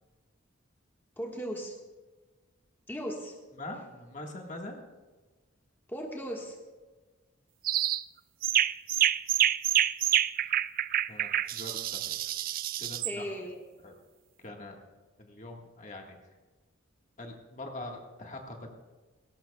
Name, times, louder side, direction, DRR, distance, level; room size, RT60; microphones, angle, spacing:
voice 1, 1.2-1.8 2.9-3.3 5.9-6.6 13.0-13.6, equal, 10° left, -1 dB, 1.5 m, -37 dB
voice 2, 3.6-4.8 11.1-12.2 12.8-13.5 13.8-13.9 14.4-14.7 15.2-16.1 17.2-18.8, left 1 dB, 35° left, 1 dB, 1.6 m, -43 dB
sound 1, 7.6-8.0 8.4-13.1, right 11 dB, 45° right, 0.3 m, -27 dB
19.0 x 18.0 x 2.3 m, 1.3 s
head